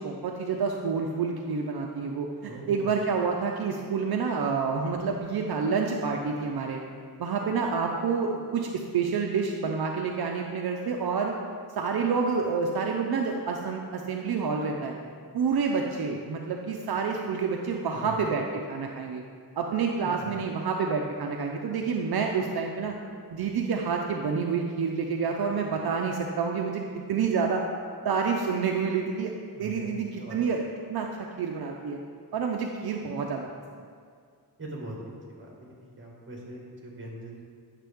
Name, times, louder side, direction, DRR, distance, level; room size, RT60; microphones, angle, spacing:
voice 1, 0.0-6.8 7.2-11.3 11.8-14.9 15.3-19.2 19.6-23.0 23.3-26.8 27.1-27.6 28.0-29.3 29.6-30.6 30.9-32.0 32.3-33.5, right 5 dB, 70° right, 1 dB, 0.6 m, -28 dB
voice 2, 2.4-2.9 17.9-18.2 20.0-20.4 29.5-30.4 34.6-35.0 35.3-37.4, right 1 dB, 30° right, -3 dB, 1.8 m, -42 dB
9.1 x 6.6 x 3.5 m, 2.1 s
wide cardioid pair, 145°, 38 cm